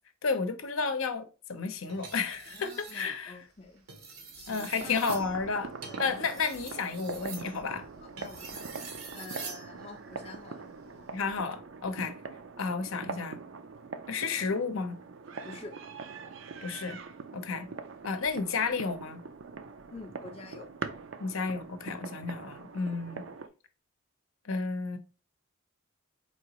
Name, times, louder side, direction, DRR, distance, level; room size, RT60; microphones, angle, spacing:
voice 1, 0.2-3.4 4.5-5.7 6.0-7.9 11.1-12.2 12.6-13.4 14.1-15.0 16.6-17.0 17.3-17.7 18.0-19.2 21.2-23.3 24.4-25.0, left 4 dB, 70° left, 0.6 m, -32 dB
sound 1, 1.9-3.1 3.8-9.7 11.1-11.4, right 5 dB, 85° right, 1.0 m, -45 dB
voice 2, 2.5-3.8 4.3-5.2 5.9-6.2 8.0-8.6 9.1-11.2 15.4-15.7 19.9-20.7, left 3 dB, 25° left, 0.5 m, -48 dB
sound 2, 4.8-23.5, right 4 dB, 60° right, 0.4 m, -43 dB
4.4 x 2.8 x 2.9 m
head